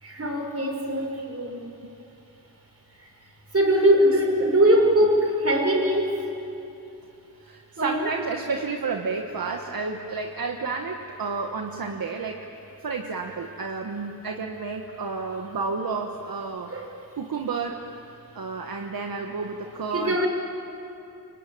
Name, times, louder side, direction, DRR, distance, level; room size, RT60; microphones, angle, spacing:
voice 1, 0.0-1.6 3.0-3.1 3.5-6.2 7.8-8.1 16.7-16.9 19.9-20.3, right 1 dB, 40° right, 1 dB, 5.6 m, -21 dB
voice 2, 7.4-12.5 12.8-16.7 17.1-17.9 18.3-20.2, right 4 dB, 65° right, 3 dB, 1.5 m, -31 dB
27.0 x 24.5 x 8.9 m, 2.7 s
wide cardioid pair, 90°, 38 cm